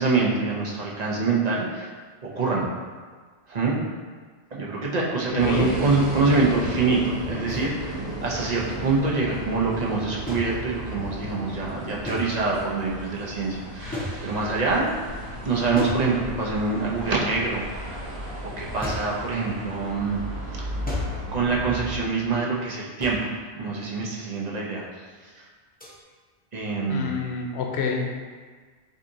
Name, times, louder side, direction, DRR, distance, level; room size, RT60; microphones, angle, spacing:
voice 1, 0.0-1.9 2.2-2.7 3.5-3.8 4.5-14.9 15.4-18.1 18.4-20.2 20.5-20.6 21.3-23.3 23.6-24.8 25.2-25.5 26.5-27.1, right 3 dB, 45° right, -3 dB, 0.8 m, -25 dB
voice 2, 5.3-5.7 26.9-28.1, left 5 dB, 80° left, 1 dB, 0.9 m, -28 dB
sound 1, 5.4-22.0, right 1 dB, 75° right, 1.5 m, -34 dB
sound 2, 7.5-7.7 10.3-11.1 12.1-12.7 13.9-14.7 15.8-16.6 18.8-19.2 20.9-21.4 23.0-23.4 25.8-26.0, equal, 10° left, 0.5 m, -35 dB
6.2 x 2.8 x 2.7 m, 1.5 s
omnidirectional pair, 1.1 m